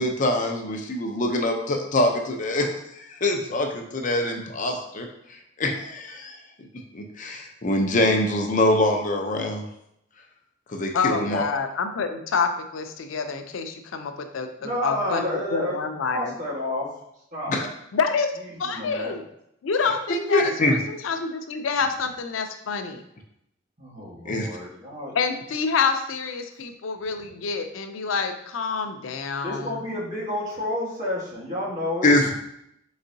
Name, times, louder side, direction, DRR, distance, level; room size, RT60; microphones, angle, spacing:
voice 1, 0.0-2.7 3.0-5.1 5.6-6.4 6.9-9.6 10.7-11.4 17.5-17.7 20.3-20.8 24.3-24.5 32.0-32.3, left 1 dB, 40° left, 3 dB, 0.6 m, -24 dB
voice 2, 10.9-14.5 14.8-15.2 15.5-16.3 17.9-18.3 18.6-19.2 19.6-23.0 25.2-29.7, left 5 dB, 90° left, 7 dB, 0.5 m, -27 dB
voice 3, 14.6-15.8 16.1-16.9 17.3-17.6 18.5-19.1 23.8-25.1 29.4-32.2, left 1 dB, 40° right, -5 dB, 1.5 m, -30 dB
4.4 x 4.0 x 2.7 m, 0.77 s
head